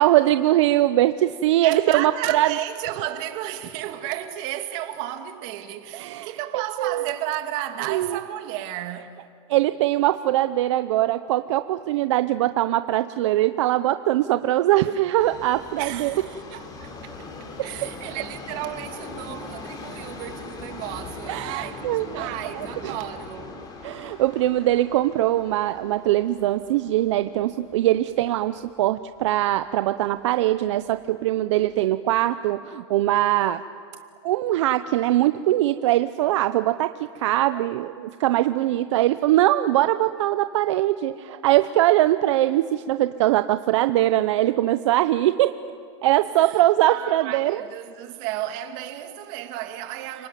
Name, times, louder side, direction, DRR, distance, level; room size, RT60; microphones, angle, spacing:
voice 1, 0.0-2.5 5.9-7.1 7.9-8.2 9.5-16.1 17.6-17.7 21.3-22.9 23.8-33.6 34.2-45.5 46.0-47.7, right 14 dB, 75° right, 0.8 m, -22 dB
voice 2, 1.6-9.3 15.8-17.3 17.6-23.6 46.4-50.3, right 13 dB, 50° right, 2.3 m, -33 dB
Subway metro underground, 15.2-29.3 29.6-29.7 30.5-30.6 30.9-31.0 31.7-31.8, left 3 dB, 25° left, 3.2 m, -41 dB
30.0 x 20.0 x 9.3 m
supercardioid pair, 145°, 15 cm